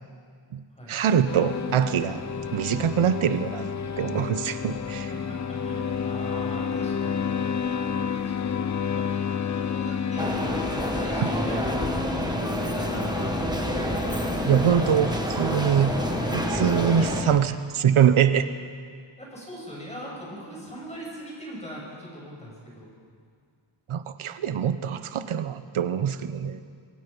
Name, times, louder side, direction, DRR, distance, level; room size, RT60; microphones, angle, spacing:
voice 1, 0.9-2.2 2.5-3.7 4.0-5.1 11.2-11.3 14.5-15.9 16.3-18.5 23.9-26.6, right 8 dB, 80° right, 11 dB, 0.9 m, -23 dB
sound 1, 1.3-17.4, left 7 dB, 35° left, 0.6 m, -31 dB
voice 2, 5.1-7.2 8.2-8.6 8.9-9.1 9.5-10.5 10.8-14.4 19.2-22.9, equal, 15° left, -4 dB, 6.8 m, -41 dB
sound 2, 10.2-17.2, right 1 dB, 10° right, 1.4 m, -29 dB
26.5 x 22.5 x 5.4 m, 2.1 s
wide cardioid pair, 180°, 48 cm